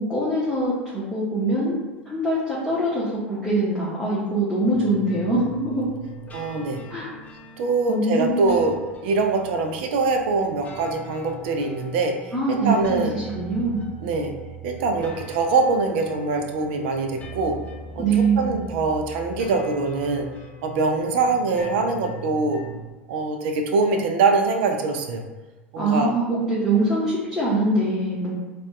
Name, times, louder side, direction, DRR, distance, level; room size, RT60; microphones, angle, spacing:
voice 1, 0.0-1.8 2.0-5.8 6.9-7.1 7.9-8.5 12.3-13.8 18.0-18.6 25.8-28.3, right 2 dB, ahead, -11 dB, 1.2 m, -23 dB
sound 1, 4.7-22.9, right 2 dB, 20° left, 0.7 m, -41 dB
voice 2, 6.3-6.8 7.6-13.1 14.0-14.3 14.6-17.6 18.0-20.3 20.6-22.6 23.1-25.2 25.7-26.1, right 3 dB, 55° right, 4 dB, 0.5 m, -23 dB
4.0 x 2.4 x 3.1 m, 1.2 s
figure-of-eight pair, 80°, 7 cm